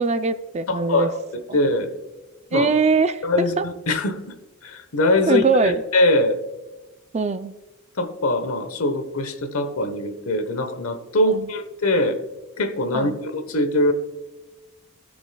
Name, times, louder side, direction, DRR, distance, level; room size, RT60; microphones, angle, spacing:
voice 1, 0.0-1.1 1.5-1.6 2.5-3.6 5.3-5.8 7.1-7.5 11.3-11.5 12.9-13.2, right 4 dB, 30° right, 11 dB, 0.4 m, -21 dB
voice 2, 0.7-1.9 2.5-2.7 3.2-4.2 4.6-6.4 8.0-12.2 12.6-13.9, left 1 dB, 70° left, 9 dB, 1.1 m, -22 dB
17.5 x 6.1 x 2.3 m, 1.1 s
head